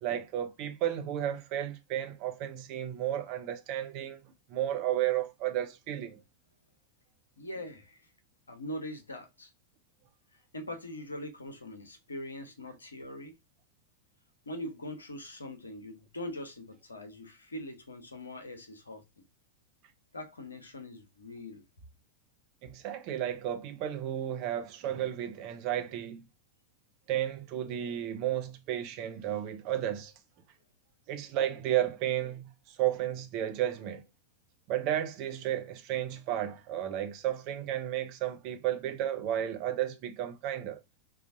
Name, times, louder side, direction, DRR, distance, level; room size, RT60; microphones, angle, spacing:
voice 1, 0.0-4.2 4.5-6.2 22.6-26.2 27.1-30.1 31.1-34.0 34.7-40.8, right 11 dB, 45° right, 0.6 m, -33 dB
voice 2, 7.4-8.1 8.5-9.5 10.5-13.4 14.5-19.0 20.1-21.6, left 1 dB, 75° left, 0.7 m, -42 dB
3.9 x 2.4 x 2.6 m
figure-of-eight pair, 90°, 0 cm